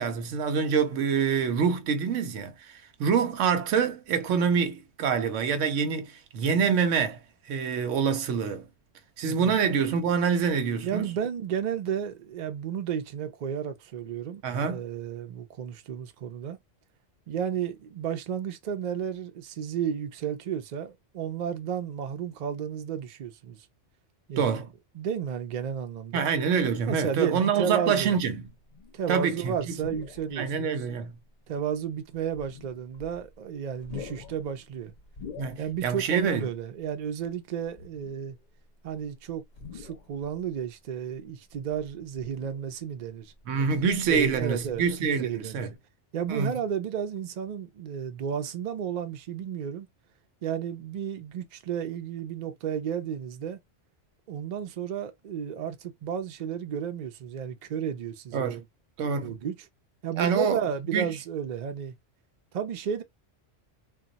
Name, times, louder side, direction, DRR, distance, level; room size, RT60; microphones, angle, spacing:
voice 1, 0.0-7.2 7.5-8.7 9.2-11.1 14.4-14.8 24.4-24.7 26.1-28.5 29.1-29.7 30.3-31.2 35.4-36.5 43.5-45.7 46.3-46.5 58.3-58.6 59.0-59.3 60.2-60.6 60.9-61.1, right 6 dB, 90° right, 1.0 m, -26 dB
voice 2, 10.8-16.6 17.3-23.7 24.3-24.6 24.9-26.3 26.9-28.2 28.9-30.9 31.5-34.9 35.6-38.4 38.8-39.4 39.7-43.3 44.1-45.7 46.1-49.9 50.4-53.6 54.3-58.6 59.2-59.7 60.0-62.0 62.5-63.0, right 8 dB, 50° right, 0.5 m, -32 dB
sound 1, 28.5-29.1 29.7-30.5 31.1-31.2 32.2-33.4 33.7-36.0 36.3-36.4 37.7-38.5 39.5-40.4 41.5-42.9 43.3-45.1 45.4-45.6, left 5 dB, 50° left, 0.6 m, -46 dB
2.3 x 2.2 x 3.9 m
omnidirectional pair, 1.2 m